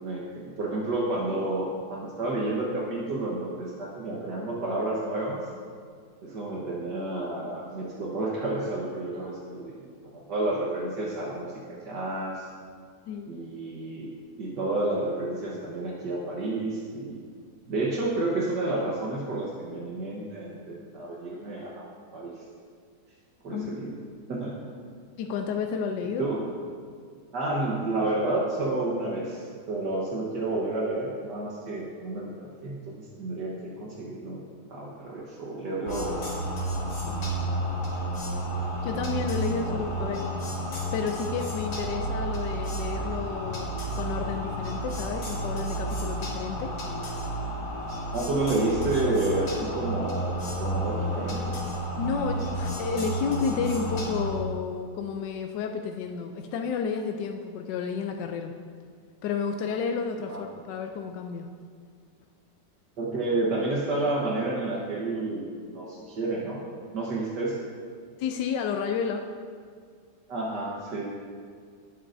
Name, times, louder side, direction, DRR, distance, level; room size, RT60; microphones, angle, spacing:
voice 1, 0.0-5.4 6.2-12.5 13.3-14.1 14.4-17.2 17.7-21.8 22.1-22.3 23.4-23.9 24.3-24.6 26.0-26.4 27.3-36.3 37.0-37.6 39.6-40.0 48.1-51.6 60.3-60.4 63.0-66.6 66.9-67.6 70.3-71.0, right 2 dB, 75° right, -4 dB, 1.9 m, -30 dB
voice 2, 23.5-24.0 25.2-26.2 37.1-37.2 38.8-40.3 40.9-46.7 52.0-58.5 59.2-61.5 68.2-69.3, left 5 dB, 85° left, 4 dB, 1.2 m, -31 dB
sound 1, 35.8-54.3, right 1 dB, 60° left, 2.2 m, -31 dB
17.5 x 7.9 x 2.6 m, 2.1 s
omnidirectional pair, 1.9 m